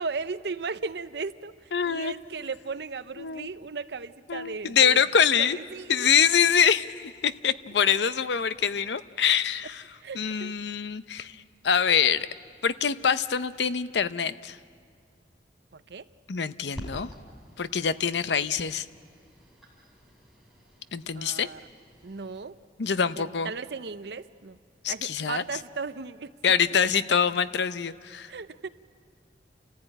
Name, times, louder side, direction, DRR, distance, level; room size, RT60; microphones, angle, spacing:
voice 1, 0.0-5.0 5.4-6.1 10.0-10.5 15.7-16.0 21.2-21.6 22.0-22.6 23.4-24.6 24.9-26.3 28.3-28.7, right 4 dB, 75° right, 13 dB, 0.6 m, -36 dB
voice 2, 1.7-2.1 3.2-3.5 4.3-5.6 5.9-9.8 10.1-11.3 11.6-12.3 12.6-14.6 16.3-17.1 17.6-18.9 20.9-21.5 22.8-23.5 24.8-25.4 26.4-28.3, left 7 dB, 85° left, 14 dB, 0.6 m, -24 dB
sound 1, 16.7-22.4, equal, ahead, 5.4 m, -48 dB
30.0 x 15.0 x 9.0 m, 2.1 s
head